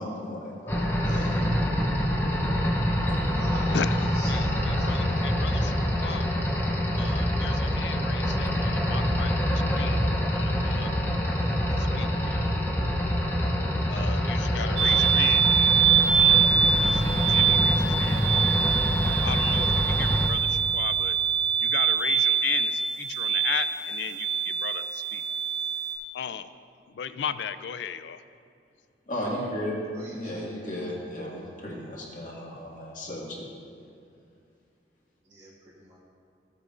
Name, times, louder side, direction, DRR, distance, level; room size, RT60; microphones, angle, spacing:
voice 1, 0.0-1.3 29.1-29.8 30.1-33.4, left 1 dB, 45° left, -4 dB, 1.9 m, -35 dB
sound 1, 0.7-20.3, equal, 10° left, 0.8 m, -26 dB
voice 2, 3.3-4.3 4.7-5.2 29.9-30.5 35.2-36.0, right 1 dB, 25° right, -7 dB, 1.1 m, -44 dB
voice 3, 4.9-6.3 7.0-9.3 9.7-10.0 10.3-10.9 11.9-12.4 13.9-15.8 16.1-17.0 17.3-18.4 19.2-20.4 20.7-21.1 21.6-22.7 23.0-24.3 24.6-24.8 25.1-25.2 26.1-26.5 27.0-28.2, left 8 dB, 80° left, 12 dB, 0.4 m, -35 dB
sound 2, 14.8-25.9, right 7 dB, 80° right, 1.4 m, -24 dB
14.5 x 8.2 x 2.6 m, 2.4 s
head